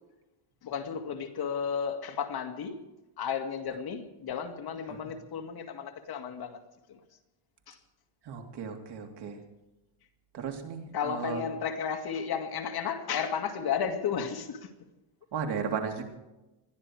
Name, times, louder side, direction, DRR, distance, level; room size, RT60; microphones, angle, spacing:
voice 1, 0.6-2.8 3.2-6.6 6.9-7.0 7.7-7.8 10.9-14.7, left 7 dB, 50° left, 5 dB, 2.1 m, -33 dB
voice 2, 8.2-9.4 10.3-11.4 15.3-16.0, right 6 dB, 55° right, 3 dB, 3.3 m, -35 dB
21.5 x 13.5 x 4.8 m, 0.99 s
cardioid pair, 130°, 49 cm